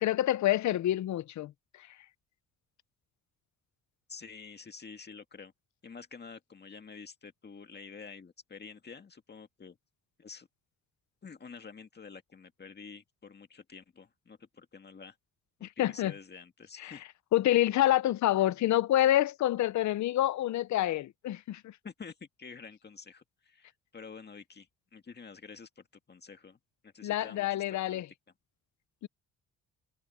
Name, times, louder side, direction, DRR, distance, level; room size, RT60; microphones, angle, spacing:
voice 1, 0.0-1.5 1.8-2.0 15.6-16.1 16.8-16.9 17.3-21.8 27.0-28.1 29.0-29.1, left 13 dB, 70° left, 0.8 m, -27 dB
voice 2, 4.1-5.5 5.8-9.8 10.2-10.5 11.2-15.2 15.6-17.0 21.8-28.0, left 5 dB, 35° left, 1.9 m, -49 dB
cardioid pair, 90°, 30 cm